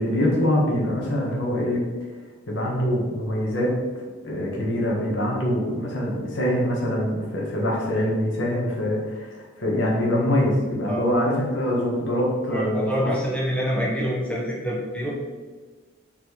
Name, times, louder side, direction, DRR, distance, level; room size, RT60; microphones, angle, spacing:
voice 1, 0.0-1.8 2.5-3.7 4.2-13.1, equal, 70° left, -3 dB, 1.7 m, -24 dB
voice 2, 12.5-15.1, equal, 5° left, -5 dB, 1.4 m, -26 dB
5.2 x 4.6 x 4.6 m, 1.4 s
head